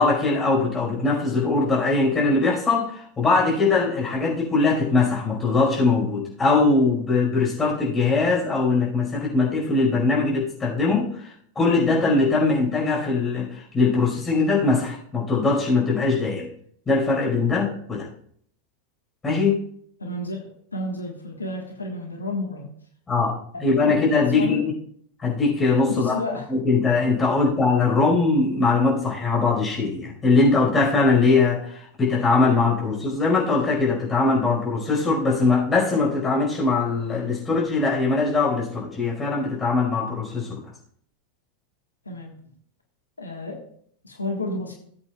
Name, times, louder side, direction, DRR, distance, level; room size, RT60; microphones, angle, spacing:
voice 1, 0.0-16.5 16.9-18.1 19.2-19.6 23.1-24.7 25.2-26.1 26.5-40.6, left 3 dB, 15° left, -2 dB, 4.8 m, -21 dB
voice 2, 20.0-20.4 20.7-22.7 24.4-24.6 25.9-26.5 42.0-42.3 43.2-43.6 44.0-44.7, left 2 dB, 80° left, 1 dB, 1.5 m, -31 dB
18.5 x 8.2 x 2.4 m, 0.64 s
figure-of-eight pair, 90°, 0 cm